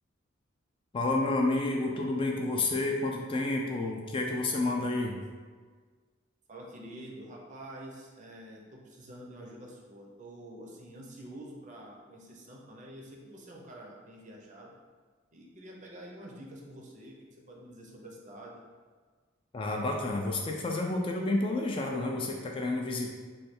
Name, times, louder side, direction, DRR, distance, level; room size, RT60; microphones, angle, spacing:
voice 1, 0.9-5.2 19.5-23.1, left 2 dB, 25° left, 0 dB, 0.3 m, -30 dB
voice 2, 6.5-14.7 15.3-17.2 17.5-18.6, right 1 dB, 40° right, -1 dB, 0.6 m, -47 dB
3.2 x 2.3 x 4.3 m, 1.5 s
head